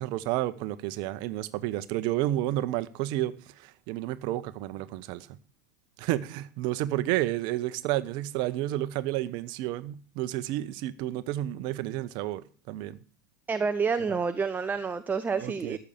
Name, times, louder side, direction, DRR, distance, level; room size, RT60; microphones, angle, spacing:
voice 1, 0.0-5.3 6.0-13.0 15.4-15.8, right 15 dB, 50° right, 0.9 m, -31 dB
voice 2, 13.5-15.8, right 5 dB, 15° right, 0.8 m, -28 dB
13.5 x 7.1 x 6.6 m
figure-of-eight pair, 80°, 10 cm